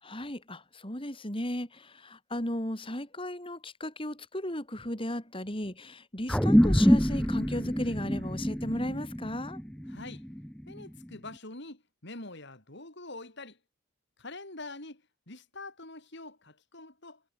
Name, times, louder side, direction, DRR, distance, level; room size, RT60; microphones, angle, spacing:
voice 1, 0.0-9.6, left 1 dB, 25° left, 4.8 m, -35 dB
sound 1, 6.3-11.0, equal, 5° left, 1.1 m, -26 dB
voice 2, 9.9-10.2 10.7-13.6 14.2-17.2, left 2 dB, 55° left, 4.6 m, -45 dB
head